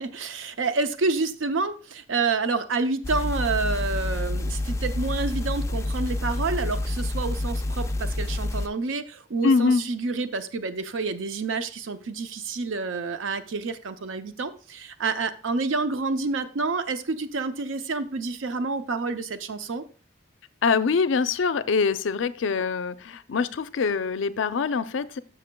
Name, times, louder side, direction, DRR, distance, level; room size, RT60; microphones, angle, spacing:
voice 1, 0.0-19.8, right 3 dB, 80° right, 0.5 m, -28 dB
sound 1, 3.0-8.7, left 2 dB, 15° left, 0.3 m, -28 dB
voice 2, 9.4-9.8 20.6-25.2, left 5 dB, 75° left, 0.4 m, -24 dB
12.5 x 6.6 x 2.2 m
head